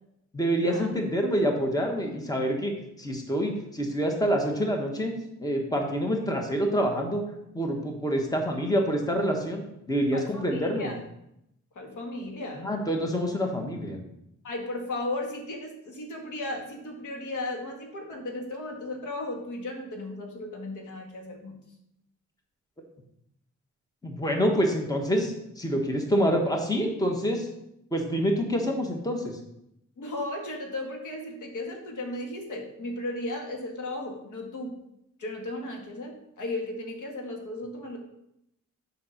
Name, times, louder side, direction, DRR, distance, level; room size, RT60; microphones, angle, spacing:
voice 1, 0.3-2.7 3.0-5.1 5.4-7.2 7.5-10.9 12.6-14.0 24.0-27.5 27.9-29.4, equal, 10° left, 2 dB, 1.2 m, -27 dB
voice 2, 10.1-11.0 11.8-12.7 14.4-21.6 30.0-34.7 35.2-38.0, left 2 dB, 85° left, 1 dB, 1.7 m, -35 dB
7.5 x 5.3 x 5.8 m, 0.82 s
wide cardioid pair, 135°, 30 cm